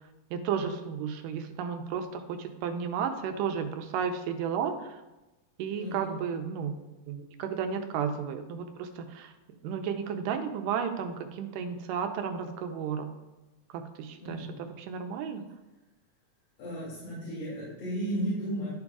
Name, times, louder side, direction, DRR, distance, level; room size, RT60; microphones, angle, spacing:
voice 1, 0.3-5.0 5.6-6.8 7.1-9.3 9.6-13.1 13.7-14.5 14.8-15.4, right 7 dB, 90° right, 6 dB, 2.3 m, -33 dB
voice 2, 14.2-14.6 16.6-18.7, right 1 dB, 85° left, -9 dB, 4.0 m, -34 dB
11.5 x 5.2 x 2.4 m, 1.1 s
omnidirectional pair, 3.9 m